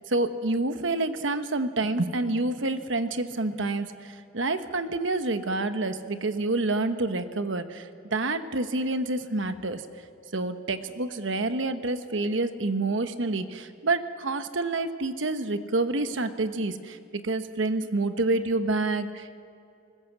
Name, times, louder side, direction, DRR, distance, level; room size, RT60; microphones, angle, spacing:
voice 1, 0.1-9.8 10.3-19.4, right 2 dB, 65° right, 9 dB, 1.1 m, -28 dB
20.0 x 20.0 x 8.1 m, 2.5 s
head